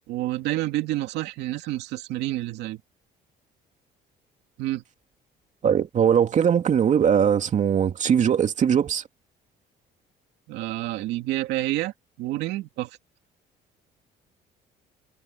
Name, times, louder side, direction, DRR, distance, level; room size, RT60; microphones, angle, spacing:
voice 1, 0.1-2.8 4.6-4.8 10.5-12.9, right 16 dB, 85° right, 2.6 m, -29 dB
voice 2, 5.6-9.0, right 8 dB, 45° right, 2.6 m, -20 dB
cardioid pair, 110°, 17 cm